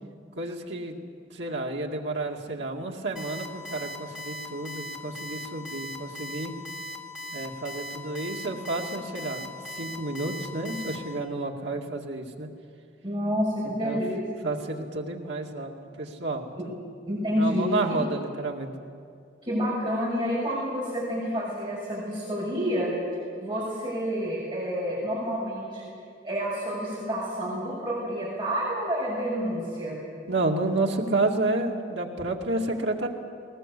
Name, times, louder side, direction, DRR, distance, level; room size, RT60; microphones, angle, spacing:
voice 1, 0.4-0.9 1.3-6.5 7.3-12.5 13.8-14.0 14.4-15.7 16.0-16.8 17.4-18.7 30.3-33.1, right 2 dB, 75° right, 1 dB, 2.3 m, -30 dB
Alarm, 3.2-11.0, equal, 5° right, 2.3 m, -38 dB
voice 2, 13.0-14.3 17.0-18.0 19.4-22.9 23.4-25.8 26.2-30.0, equal, 25° right, -6 dB, 6.2 m, -29 dB
20.5 x 20.0 x 8.4 m, 2.3 s
head